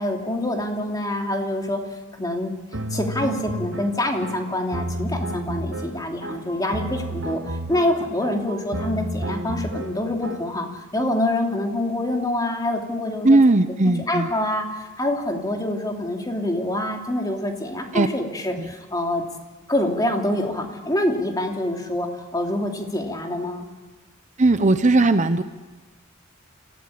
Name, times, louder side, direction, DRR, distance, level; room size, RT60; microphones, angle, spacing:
voice 1, 0.0-1.8 2.1-2.5 2.9-13.4 13.8-19.2 19.7-23.7, left 1 dB, 20° left, 2 dB, 3.0 m, -26 dB
sound 1, 2.7-10.6, right 1 dB, 70° right, 1.7 m, -31 dB
voice 2, 13.2-14.3 17.9-18.1 18.6-18.7 24.4-25.4, right 2 dB, 35° right, 11 dB, 0.8 m, -17 dB
27.5 x 16.0 x 8.7 m, 1.3 s
head